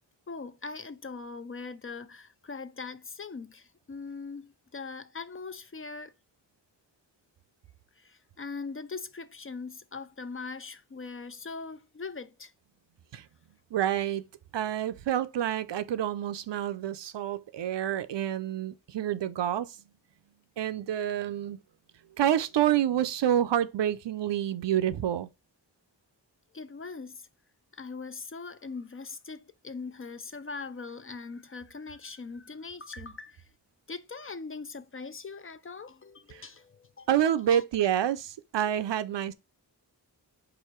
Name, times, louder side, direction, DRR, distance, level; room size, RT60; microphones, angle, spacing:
voice 1, 0.3-6.1 8.0-12.5 26.5-27.3 27.7-33.5 33.9-37.6, left 4 dB, 30° left, 0.4 m, -41 dB
voice 2, 13.7-14.2 14.5-19.8 20.6-21.6 22.2-25.3 36.3-36.4 37.1-39.3, right 10 dB, 80° right, 0.5 m, -28 dB
4.8 x 2.5 x 4.4 m
cardioid pair, 50°, 43 cm